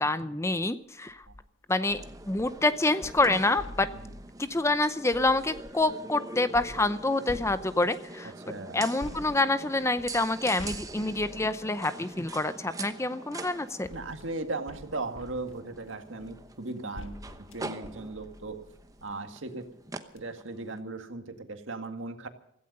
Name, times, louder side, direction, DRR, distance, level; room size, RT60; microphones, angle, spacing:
voice 1, 0.0-1.2 1.7-2.0 2.3-3.9 4.4-8.3 8.7-13.9, left 2 dB, 15° left, 12 dB, 0.6 m, -27 dB
sound 1, 1.1-1.4 1.9-5.9 6.5-8.1 9.0-12.4 13.3-19.2 19.7-19.8 20.1-20.2, left 1 dB, 70° left, 1.4 m, -47 dB
sound 2, 1.9-20.8, right 3 dB, 15° right, 1.0 m, -44 dB
voice 2, 8.5-8.8 13.9-18.6 19.0-19.7 20.1-22.3, right 2 dB, 70° right, 7 dB, 1.9 m, -37 dB
16.5 x 15.5 x 5.4 m, 0.72 s
head